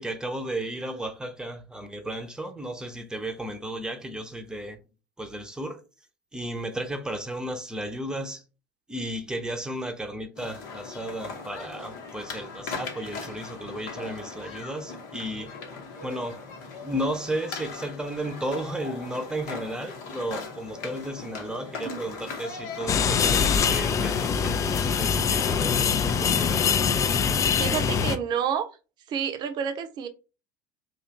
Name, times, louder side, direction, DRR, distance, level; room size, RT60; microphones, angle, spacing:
voice 1, 0.0-4.8 5.2-5.8 6.3-8.4 8.9-15.5 16.0-16.4 16.8-24.4 25.0-25.8 26.0-26.6 27.1-27.4, right 1 dB, 5° right, 0.7 m, -34 dB
sound 1, 10.4-26.8, left 4 dB, 65° left, 0.9 m, -40 dB
sound 2, 22.9-28.2, left 6 dB, 30° left, 0.4 m, -23 dB
voice 2, 27.6-28.7 29.1-30.1, right 8 dB, 45° right, 0.6 m, -29 dB
2.8 x 2.5 x 4.3 m
figure-of-eight pair, 70°, 10 cm